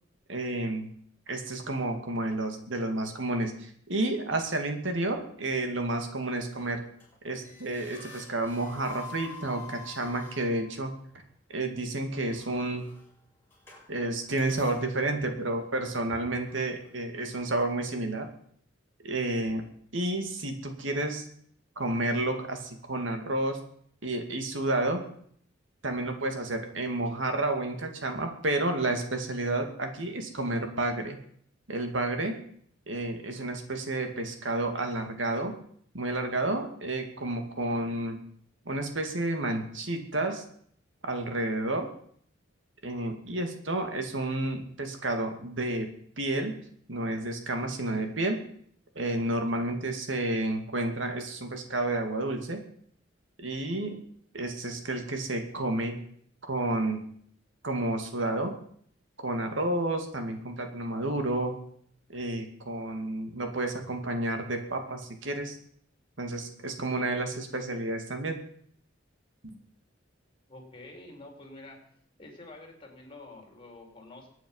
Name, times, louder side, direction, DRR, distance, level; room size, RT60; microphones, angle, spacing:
voice 1, 0.3-0.9 1.3-6.8 7.2-11.0 11.5-12.9 13.9-18.3 19.0-19.6 19.9-21.3 21.8-23.6 24.0-25.0 25.8-31.2 31.7-32.4 32.9-35.5 35.9-38.2 38.7-40.4 41.0-41.9 42.8-45.9 46.2-46.6 46.9-48.4 49.0-52.6 53.4-54.0 54.3-56.0 56.4-57.0 57.6-58.5 59.2-61.5 62.1-65.6 66.2-68.4, right 2 dB, 75° right, 5 dB, 2.4 m, -30 dB
sound 1, 6.6-7.1 7.4-10.8 12.1-13.0 13.5-13.9 14.1-14.9 15.4-15.5 15.9-16.0 16.4-16.9, left 4 dB, 10° left, 7.6 m, -47 dB
voice 2, 70.5-71.8 72.2-74.3, left 2 dB, 30° left, 1 dB, 4.2 m, -48 dB
23.5 x 9.2 x 5.6 m, 0.62 s
head